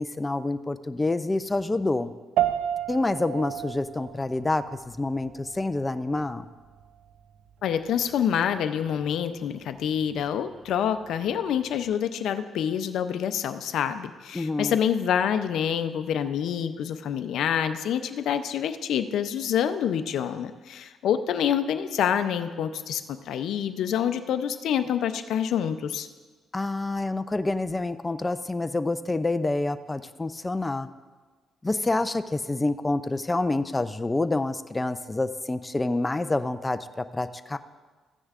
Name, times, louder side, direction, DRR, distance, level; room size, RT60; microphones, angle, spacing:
voice 1, 0.0-2.1 2.9-4.6 5.0-6.5 14.3-14.8 26.5-30.9 31.6-37.6, left 2 dB, 15° left, 10 dB, 0.4 m, -27 dB
sound 1, 2.4-11.9, right 11 dB, 85° right, 0.6 m, -35 dB
voice 2, 7.6-26.1, left 8 dB, 75° left, 10 dB, 0.5 m, -27 dB
15.0 x 9.9 x 2.4 m, 1.4 s
cardioid pair, 90°, 0 cm